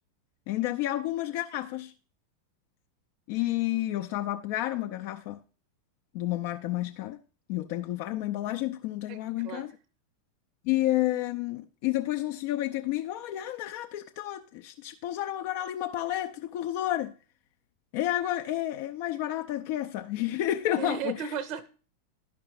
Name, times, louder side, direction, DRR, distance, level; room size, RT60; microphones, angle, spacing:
voice 1, 0.5-1.9 3.3-5.4 6.1-7.2 7.5-9.7 10.6-17.1 17.9-21.3, left 14 dB, 45° left, 0.5 m, -30 dB
voice 2, 9.1-9.7 20.7-21.7, right 7 dB, 40° right, 0.7 m, -36 dB
11.5 x 5.2 x 4.7 m
figure-of-eight pair, 90°, 0 cm